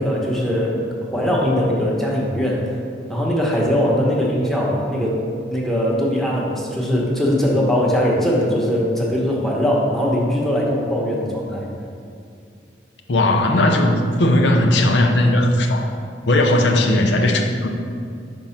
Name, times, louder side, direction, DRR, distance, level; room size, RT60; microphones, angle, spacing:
voice 1, 0.0-2.7 3.1-5.2 5.5-11.7, equal, ahead, -4 dB, 0.9 m, -20 dB
voice 2, 13.1-15.9 16.3-17.8, left 1 dB, 85° left, 3 dB, 0.6 m, -17 dB
5.4 x 3.7 x 5.7 m, 2.4 s
head